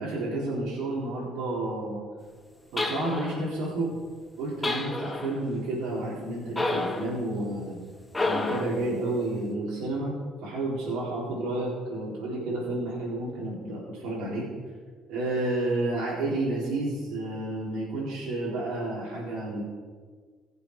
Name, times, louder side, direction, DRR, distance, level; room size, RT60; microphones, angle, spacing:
voice 1, 0.0-2.0 2.7-4.0 4.4-7.8 8.2-10.2 10.4-14.5 15.1-19.6, right 2 dB, 75° right, -7 dB, 4.1 m, -30 dB
sound 1, 2.8-3.5 4.6-5.4 6.6-7.1 8.1-8.8, left 2 dB, 15° left, 1.9 m, -29 dB
16.0 x 7.1 x 4.8 m, 1.5 s
supercardioid pair, 75°, 0 cm